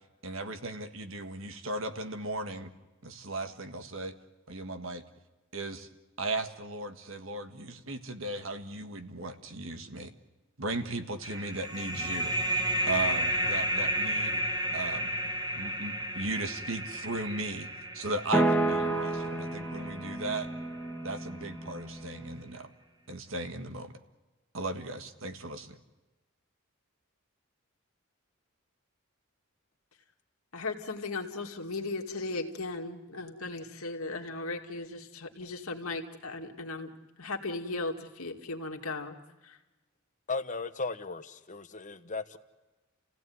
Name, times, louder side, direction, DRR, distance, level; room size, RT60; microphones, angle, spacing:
voice 1, 0.2-2.7 3.0-4.1 4.5-5.0 5.5-5.9 6.2-10.1 10.6-12.3 12.9-14.4 14.7-15.1 15.6-20.5 21.0-22.7 23.1-23.9 24.5-25.8, right 2 dB, 65° right, 8 dB, 1.7 m, -36 dB
sound 1, 11.2-20.5, equal, 20° right, 1.4 m, -32 dB
sound 2, 18.3-22.4, right 2 dB, 5° left, 2.0 m, -31 dB
voice 2, 30.5-36.9 37.2-39.2 39.4-39.6, left 3 dB, 85° left, 3 dB, 2.4 m, -37 dB
voice 3, 40.3-42.4, left 3 dB, 35° left, 10 dB, 1.1 m, -36 dB
30.0 x 16.5 x 9.6 m, 1.1 s
head